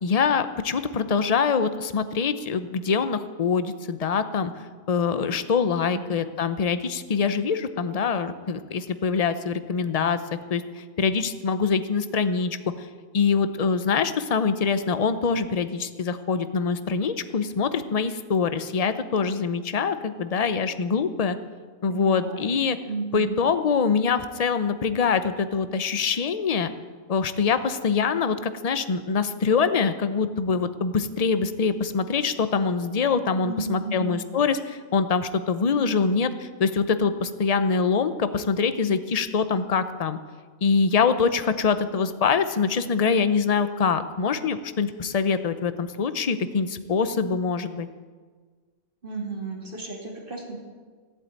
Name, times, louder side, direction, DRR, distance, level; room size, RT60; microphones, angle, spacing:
voice 1, 0.0-4.5 4.9-10.2 10.5-10.6 11.0-12.6 13.1-21.4 21.8-22.8 23.1-26.7 27.1-40.2 40.6-47.9, left 5 dB, 35° left, 11 dB, 0.6 m, -24 dB
voice 2, 21.9-22.5 22.8-23.4 33.4-34.1 49.0-50.6, right 3 dB, 40° right, 0 dB, 2.8 m, -33 dB
15.5 x 8.1 x 9.0 m, 1.5 s
omnidirectional pair, 1.4 m